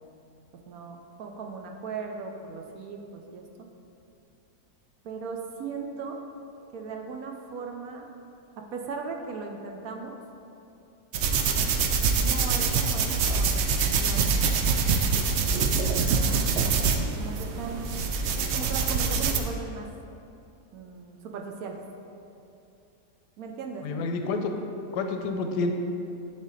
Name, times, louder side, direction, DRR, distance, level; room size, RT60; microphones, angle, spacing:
voice 1, 0.7-3.4 5.0-6.2 6.7-8.1 8.7-10.2 12.1-13.7 14.0-14.4 16.0-17.9 18.3-19.9 20.7-21.8 23.4-24.0, right 4 dB, 70° right, 2 dB, 1.0 m, -38 dB
sound 1, 11.1-19.4, right 5 dB, 85° right, 0.5 m, -25 dB
voice 2, 23.8-24.5 24.9-25.7, left 3 dB, 90° left, 5 dB, 1.2 m, -28 dB
9.8 x 3.5 x 4.0 m, 2.7 s
omnidirectional pair, 1.7 m